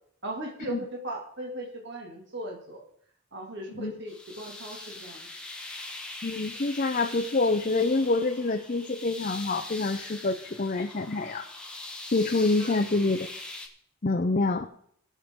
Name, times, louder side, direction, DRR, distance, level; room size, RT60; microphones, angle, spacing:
voice 1, 0.2-2.8 3.3-5.3 12.6-13.1, right 1 dB, 50° right, -1 dB, 2.1 m, -38 dB
sound 1, 4.1-13.7, left 2 dB, 5° left, 1.0 m, -42 dB
voice 2, 6.2-11.4 12.1-13.3 14.0-14.7, left 3 dB, 35° left, 4 dB, 0.6 m, -26 dB
19.5 x 6.8 x 3.7 m, 0.66 s
head